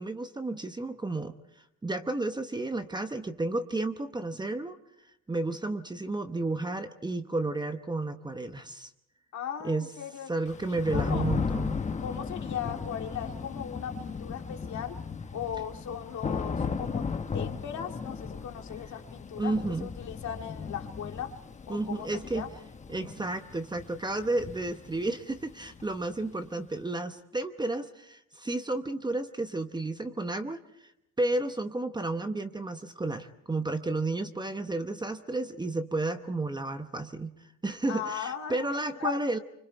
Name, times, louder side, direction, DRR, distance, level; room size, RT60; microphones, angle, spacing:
voice 1, 0.0-1.3 1.8-4.8 5.3-8.9 9.6-9.9 10.3-11.8 19.4-19.9 21.7-22.5 22.9-30.9 31.2-37.3 37.6-39.4, right 2 dB, 15° right, 8 dB, 0.9 m, -32 dB
voice 2, 9.3-10.3 10.7-11.3 12.0-15.0 15.3-17.1 17.3-19.5 19.8-21.3 21.7-22.5 37.9-39.2, left 8 dB, 60° left, 4 dB, 2.3 m, -38 dB
Thunder / Rain, 10.5-26.2, left 5 dB, 20° left, 1.0 m, -36 dB
26.0 x 25.0 x 4.5 m, 0.79 s
cardioid pair, 120°, 32 cm